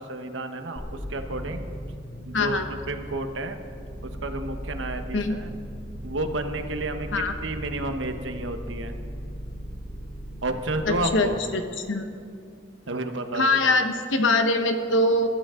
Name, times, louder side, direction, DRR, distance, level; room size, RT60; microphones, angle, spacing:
voice 1, 0.0-1.6 2.3-2.6 2.9-3.6 4.0-5.5 6.0-8.9 10.4-11.4 12.9-13.6, right 2 dB, 80° right, 7 dB, 1.2 m, -31 dB
sound 1, 0.8-11.0, equal, 25° left, 2.9 m, -37 dB
voice 2, 2.3-2.7 5.1-5.4 7.1-7.3 10.9-11.6 11.9-12.1 13.3-15.3, left 2 dB, 80° left, 6 dB, 1.2 m, -23 dB
22.5 x 13.0 x 3.8 m, 2.4 s
head